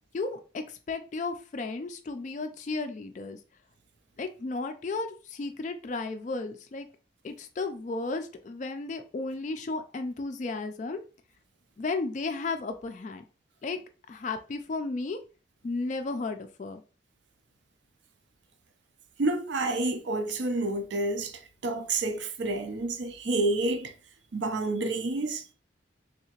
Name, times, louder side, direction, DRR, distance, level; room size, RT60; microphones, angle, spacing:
voice 1, 0.1-3.4 4.2-6.9 7.2-11.0 11.8-13.2 13.6-13.8 14.1-15.2 15.6-16.8, left 3 dB, 40° left, 0.3 m, -34 dB
voice 2, 19.2-23.9 24.3-25.4, right 2 dB, 70° right, 0.5 m, -29 dB
3.4 x 2.8 x 2.8 m
head